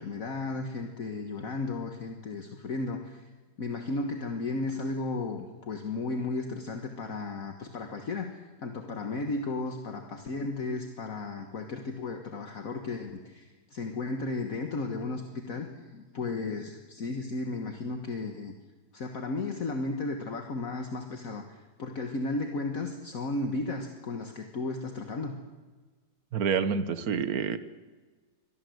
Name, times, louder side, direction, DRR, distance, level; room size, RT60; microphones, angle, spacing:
voice 1, 0.0-3.3 3.6-18.5 18.9-25.4, left 3 dB, 50° left, 5 dB, 1.8 m, -34 dB
voice 2, 26.3-27.6, right 6 dB, 55° right, 13 dB, 1.6 m, -28 dB
25.0 x 18.0 x 8.0 m, 1.3 s
omnidirectional pair, 1.9 m